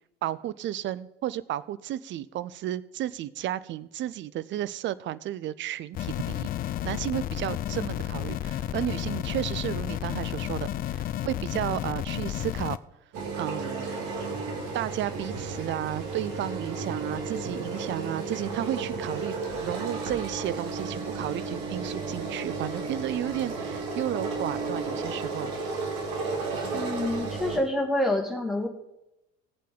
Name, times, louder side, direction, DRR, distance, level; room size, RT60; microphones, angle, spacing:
voice 1, 0.2-6.5 6.8-12.8 13.4-13.9 14.7-25.5, right 12 dB, 30° right, 0.5 m, -33 dB
sound 1, 5.9-12.8, left 12 dB, 25° left, 0.3 m, -32 dB
sound 2, 13.1-27.6, right 3 dB, 55° right, 2.2 m, -33 dB
voice 2, 26.7-28.7, left 1 dB, ahead, 2.1 m, -27 dB
16.5 x 8.3 x 3.8 m
figure-of-eight pair, 60°, 38 cm